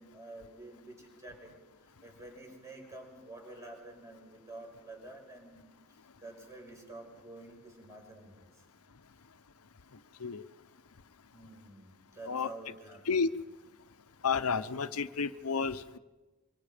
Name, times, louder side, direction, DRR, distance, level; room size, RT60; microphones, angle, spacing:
voice 1, 0.0-1.6 2.0-5.7 6.2-8.6 11.3-13.2, right 2 dB, 15° right, 1 dB, 5.7 m, -49 dB
voice 2, 14.2-16.0, left 5 dB, 85° left, 11 dB, 0.9 m, -31 dB
26.0 x 24.5 x 5.1 m, 1.2 s
head